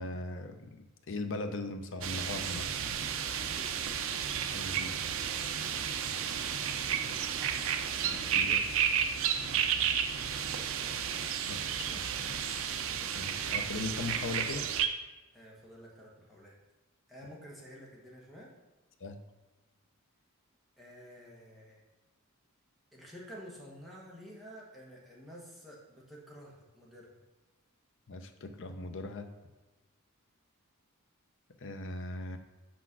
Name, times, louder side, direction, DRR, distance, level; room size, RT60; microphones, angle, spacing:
voice 1, 0.0-3.0 4.5-4.9 8.0-8.9 11.5-12.9 13.1-14.7 19.0-19.2 28.1-29.3 31.6-32.4, left 2 dB, 60° left, 8 dB, 0.7 m, -40 dB
sound 1, 2.0-14.9, right 8 dB, 65° right, 0.5 m, -32 dB
voice 2, 3.4-3.8 15.3-16.5 17.1-18.5 20.8-21.8 22.9-27.1, equal, ahead, -5 dB, 1.5 m, -50 dB
6.2 x 4.6 x 6.0 m, 1.1 s
head